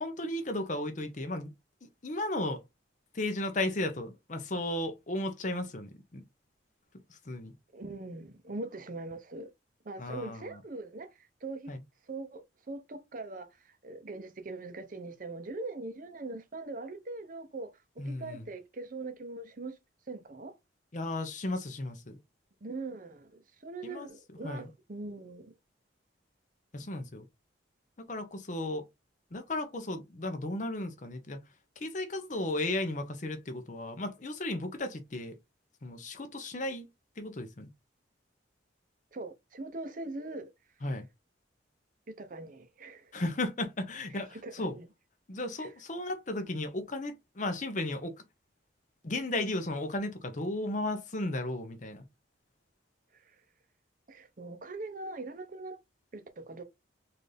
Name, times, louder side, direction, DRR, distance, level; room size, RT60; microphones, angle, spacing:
voice 1, 0.0-1.5 2.0-2.6 3.1-6.2 7.3-7.5 10.0-10.5 11.7-11.8 18.0-18.4 20.9-22.2 23.8-24.1 24.4-24.7 26.7-27.3 28.0-28.8 29.3-31.4 31.8-35.3 35.8-36.9 37.2-37.7 40.8-41.0 43.1-44.8 45.3-48.1 49.0-52.0, left 2 dB, 40° left, 0.7 m, -35 dB
voice 2, 7.7-9.5 9.8-11.1 11.4-11.7 12.1-17.7 18.0-19.7 20.1-20.5 22.6-25.5 39.1-40.5 42.1-43.1 44.1-44.9 45.6-45.7 54.1-55.8 56.1-56.6, right 2 dB, 45° right, 0.6 m, -41 dB
4.0 x 2.6 x 3.3 m
head